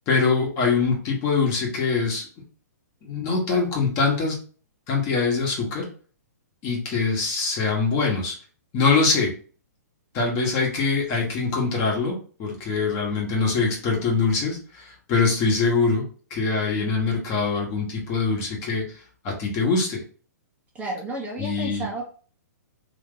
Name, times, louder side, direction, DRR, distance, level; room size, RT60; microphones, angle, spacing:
voice 1, 0.1-2.3 3.0-4.3 4.9-5.8 6.6-8.3 8.7-9.3 10.1-16.0 16.3-20.0 21.4-21.8, left 4 dB, 30° left, -1 dB, 1.3 m, -23 dB
voice 2, 20.7-22.0, right 1 dB, 15° right, -2 dB, 0.8 m, -32 dB
2.9 x 2.7 x 3.8 m, 0.41 s
hypercardioid pair, 130°, 9 cm